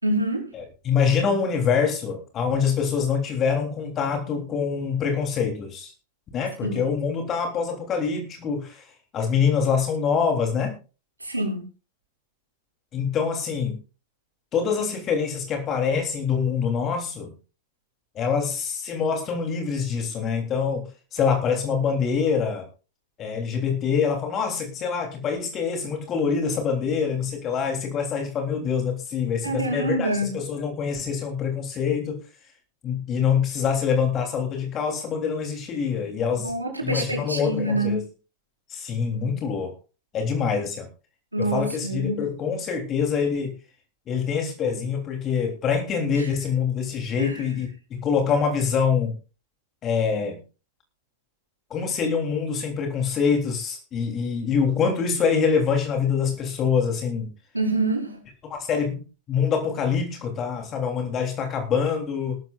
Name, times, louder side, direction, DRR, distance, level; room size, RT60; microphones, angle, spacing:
voice 1, 0.0-0.5 6.6-6.9 11.2-11.6 29.4-30.3 36.4-38.0 41.3-42.2 46.2-46.3 47.2-47.4 57.5-58.2, right 1 dB, 85° right, 1 dB, 4.8 m, -26 dB
voice 2, 0.5-5.9 6.3-8.8 9.1-10.8 12.9-13.8 14.5-17.3 18.1-22.6 23.2-32.2 32.8-36.5 36.8-38.0 38.7-39.7 40.1-40.9 41.4-43.5 44.1-49.2 49.8-50.4 51.7-57.3 58.4-62.4, left 6 dB, 30° left, 3 dB, 3.4 m, -25 dB
18.5 x 13.5 x 2.5 m, 0.33 s
figure-of-eight pair, 90°, 0 cm